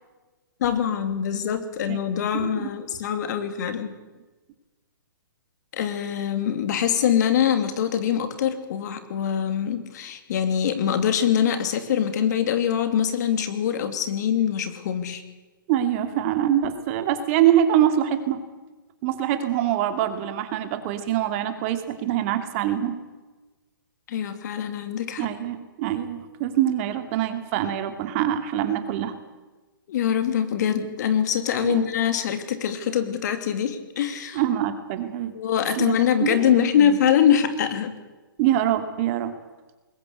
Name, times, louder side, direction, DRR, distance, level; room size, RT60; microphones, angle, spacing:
voice 1, 0.6-3.9 5.7-15.2 24.1-25.3 29.9-34.4 35.3-38.0, left 9 dB, 50° left, 9 dB, 2.8 m, -23 dB
voice 2, 2.3-2.7 15.7-18.4 19.0-23.0 25.2-29.1 31.6-31.9 34.3-35.3 35.7-35.9 36.2-37.0 38.4-39.3, right 11 dB, 35° right, 8 dB, 2.6 m, -24 dB
21.0 x 20.0 x 8.2 m, 1.2 s
hypercardioid pair, 140°, 12 cm